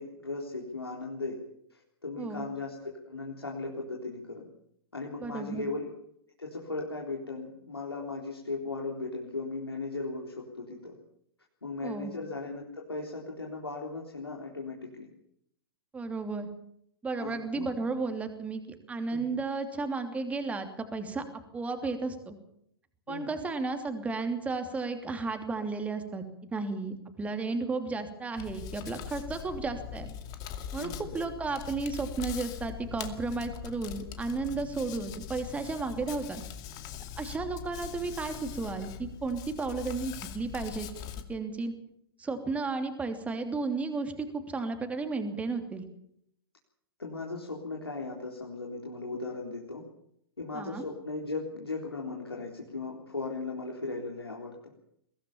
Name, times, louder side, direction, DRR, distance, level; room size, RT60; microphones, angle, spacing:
voice 1, 0.0-1.4 1.7-4.5 4.9-5.9 6.4-10.9 11.6-15.1 17.2-17.7 19.1-19.4 23.1-23.4 30.8-31.3 47.0-49.8 50.4-54.6, left 3 dB, 80° left, 0 dB, 3.8 m, -37 dB
voice 2, 5.2-5.7 11.8-12.1 15.9-16.5 17.0-18.6 18.9-21.2 21.5-22.4 23.1-26.2 26.5-30.1 30.7-36.4 37.2-40.9 41.3-41.7 42.2-45.8 50.5-50.8, right 3 dB, 10° right, 6 dB, 2.9 m, -33 dB
Hands, 28.4-41.2, left 9 dB, 30° left, 2.3 m, -41 dB
22.5 x 17.0 x 7.2 m, 0.72 s
figure-of-eight pair, 110°, 13 cm